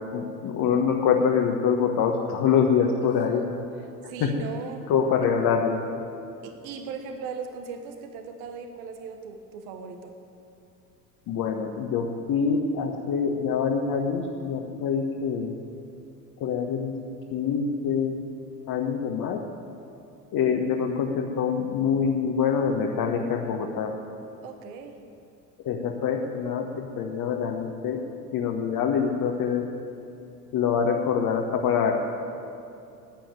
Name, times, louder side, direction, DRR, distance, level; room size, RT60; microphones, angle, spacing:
voice 1, 0.0-3.4 4.2-4.3 4.9-5.8 11.3-15.5 16.4-16.9 17.3-18.2 18.7-19.4 20.3-23.9 25.6-28.0 28.3-29.6 30.5-31.9, left 6 dB, 45° left, 1 dB, 1.4 m, -25 dB
voice 2, 3.0-3.4 3.8-4.9 6.4-10.1 24.4-25.0, right 5 dB, 60° right, 6 dB, 1.3 m, -38 dB
12.0 x 9.2 x 9.4 m, 2.6 s
hypercardioid pair, 75°, 47 cm